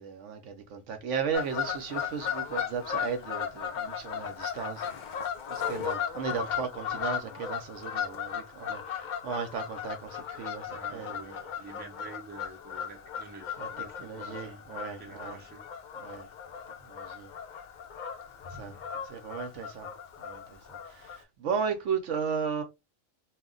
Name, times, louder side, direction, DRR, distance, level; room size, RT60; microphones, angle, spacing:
voice 1, 0.0-5.1 5.5-11.5 13.6-13.7 14.0-15.4 16.0-16.3 16.8-17.3 18.5-19.9 20.2-22.6, right 6 dB, 70° right, 0.9 m, -35 dB
Fowl / Bird vocalization bird call bird song, 1.3-21.2, left 8 dB, 75° left, 0.4 m, -36 dB
voice 2, 10.7-14.7 15.0-15.7, right 3 dB, 10° right, 0.5 m, -48 dB
2.3 x 2.1 x 3.6 m
omnidirectional pair, 1.3 m